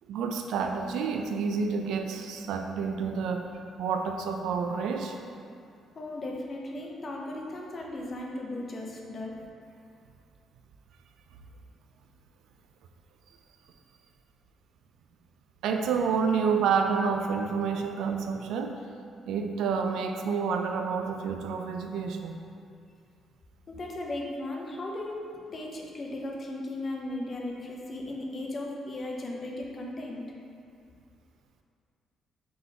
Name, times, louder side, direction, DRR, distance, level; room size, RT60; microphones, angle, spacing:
voice 1, 0.1-3.5 3.8-5.2 15.6-18.8 19.3-22.4, right 5 dB, 85° right, 4 dB, 0.3 m, -29 dB
voice 2, 5.9-9.3 23.7-25.2 25.5-30.2, left 1 dB, 40° left, -1 dB, 0.6 m, -36 dB
3.8 x 3.8 x 2.8 m, 2.3 s
cardioid pair, 90°, 0 cm